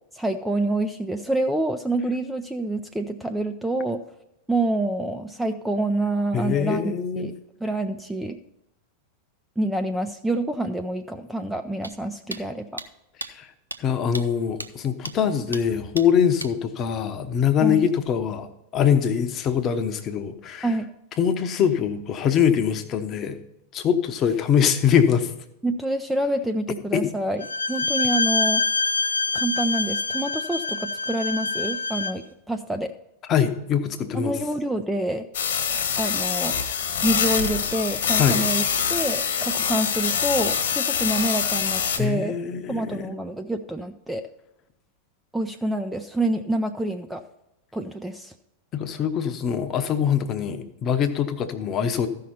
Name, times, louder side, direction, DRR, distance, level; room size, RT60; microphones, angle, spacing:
voice 1, 0.1-4.0 4.5-7.3 7.6-8.4 9.6-12.8 17.6-17.9 20.6-20.9 25.6-28.6 29.3-32.9 34.1-35.2 36.0-36.7 37.0-38.6 38.9-42.4 42.7-44.2 45.3-47.2 47.7-48.3, right 1 dB, 5° right, 7 dB, 0.5 m, -27 dB
voice 2, 6.3-7.3 13.3-13.5 13.8-20.7 21.2-23.4 23.7-25.3 26.9-27.0 33.3-34.3 38.1-38.4 42.0-43.1 48.7-52.1, left 8 dB, 30° left, 8 dB, 0.9 m, -23 dB
sound 1, 11.8-11.9 12.3-12.4 12.8-12.9 13.2-13.3 13.7-13.8 14.1-14.2 14.6-14.7 15.1-15.2 15.5-15.6 16.0-16.1 16.4-16.5, right 2 dB, 85° right, 0.5 m, -34 dB
Bowed string instrument, 27.4-32.2, left 3 dB, 80° left, 0.7 m, -25 dB
sound 2, 35.3-42.0, left 7 dB, 60° left, 1.3 m, -24 dB
14.5 x 5.8 x 4.2 m, 0.86 s
figure-of-eight pair, 90°, 0 cm